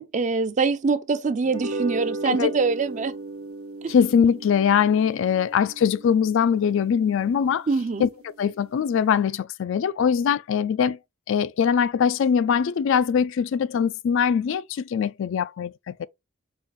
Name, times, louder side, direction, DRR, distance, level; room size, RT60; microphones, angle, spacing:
voice 1, 0.0-3.1 7.7-8.1, right 4 dB, 35° right, 0.5 m, -24 dB
sound 1, 1.4-8.0, right 2 dB, 85° right, 1.0 m, -36 dB
voice 2, 3.9-7.7 8.0-8.1 8.4-11.0 11.3-16.1, left 7 dB, 65° left, 0.3 m, -22 dB
5.5 x 2.4 x 3.5 m
head